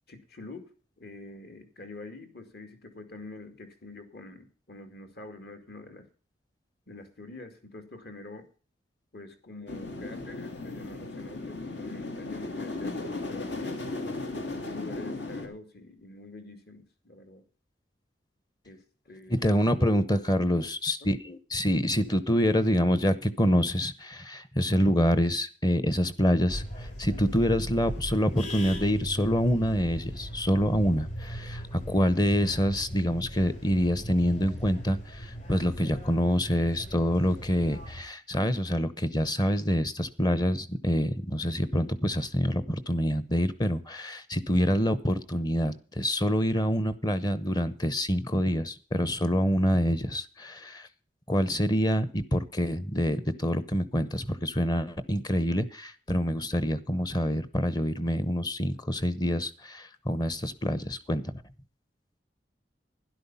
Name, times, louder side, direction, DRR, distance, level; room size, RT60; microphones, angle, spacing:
voice 1, 0.1-6.0 6.9-8.5 9.1-13.8 14.6-17.4 18.6-19.4 21.0-21.1, left 2 dB, 60° left, 7 dB, 2.4 m, -46 dB
sound 1, 9.7-15.5, left 2 dB, 75° left, 2.6 m, -36 dB
voice 2, 19.3-50.9 51.3-61.3, equal, 20° left, 14 dB, 0.9 m, -26 dB
sound 2, 26.5-38.0, equal, 40° left, 7.0 m, -39 dB
12.5 x 11.0 x 5.6 m, 0.38 s
head